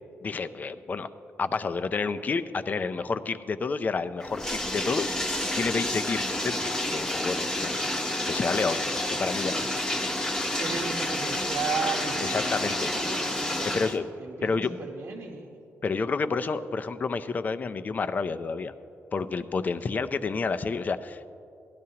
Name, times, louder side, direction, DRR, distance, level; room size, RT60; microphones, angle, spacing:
voice 1, 0.2-1.1 1.4-9.8 12.2-12.9 13.7-14.0 14.4-14.7 15.8-18.7 19.1-21.3, left 4 dB, 35° left, 11 dB, 0.4 m, -30 dB
Bathtub (filling or washing), 4.2-14.0, left 1 dB, 10° left, 0.9 m, -29 dB
voice 2, 10.6-15.5, right 5 dB, 65° right, -2 dB, 1.0 m, -35 dB
17.5 x 12.0 x 2.9 m, 2.7 s
cardioid pair, 125°, 5 cm